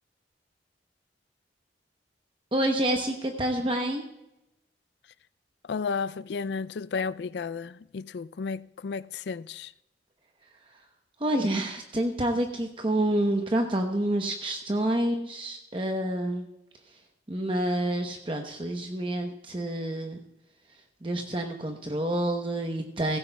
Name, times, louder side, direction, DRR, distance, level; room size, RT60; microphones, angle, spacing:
voice 1, 2.5-4.0 11.2-16.5 17.3-20.2 21.0-23.2, right 1 dB, 30° right, 0.9 m, -28 dB
voice 2, 5.7-9.7, left 5 dB, 70° left, 0.4 m, -33 dB
17.0 x 15.5 x 2.3 m
head